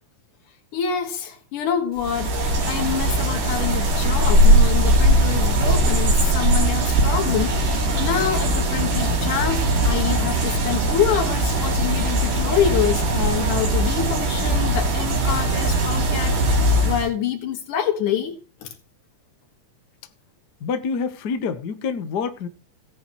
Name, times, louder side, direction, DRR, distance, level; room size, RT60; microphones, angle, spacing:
voice 1, 0.7-18.7, left 9 dB, 85° left, 3.5 m, -26 dB
sound 1, 2.0-17.1, right 1 dB, 90° right, 4.3 m, -20 dB
voice 2, 20.6-22.5, left 5 dB, 60° left, 1.0 m, -27 dB
17.0 x 10.0 x 3.1 m
omnidirectional pair, 3.5 m